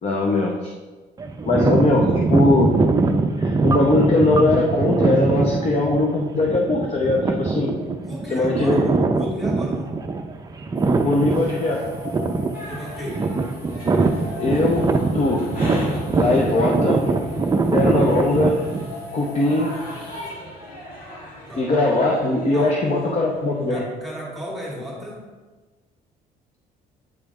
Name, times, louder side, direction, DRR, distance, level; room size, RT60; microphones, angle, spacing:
voice 1, 0.0-0.6 1.4-2.7 3.4-7.8 8.3-9.0 11.0-11.9 14.4-15.6 16.1-17.0 17.7-18.6 19.1-19.8 21.6-23.8, left 2 dB, 40° left, -1 dB, 0.7 m, -20 dB
sound 1, 1.2-18.9, right 3 dB, 20° right, 0.5 m, -22 dB
voice 2, 8.0-9.9 12.6-13.2 21.5-21.7 22.5-22.7 23.7-25.2, equal, ahead, -5 dB, 1.8 m, -35 dB
sound 2, 10.7-20.3, left 2 dB, 80° left, 1.8 m, -38 dB
sound 3, 12.5-23.8, equal, 60° left, 1.9 m, -37 dB
8.5 x 3.3 x 3.6 m, 1.3 s
cardioid pair, 110°, 17 cm